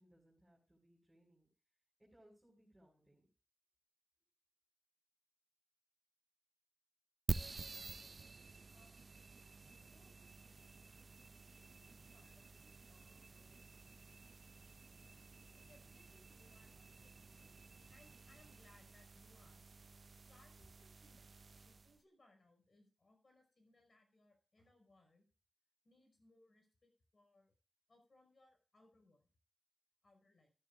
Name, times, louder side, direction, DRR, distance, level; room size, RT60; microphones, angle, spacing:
voice 1, 0.0-1.5 2.0-3.3, right 1 dB, 20° right, -4 dB, 6.1 m, -68 dB
sound 1, 7.3-22.0, right 4 dB, 60° right, 0.4 m, -49 dB
voice 2, 8.7-9.3 9.7-10.2 11.7-13.7 15.0-15.1 15.5-17.3 17.9-21.3 21.6-25.3 25.8-27.5 27.9-29.3 30.0-30.5, left 2 dB, 55° left, 4 dB, 5.3 m, -70 dB
14.0 x 12.0 x 2.5 m, 0.35 s
cardioid pair, 50°, 0 cm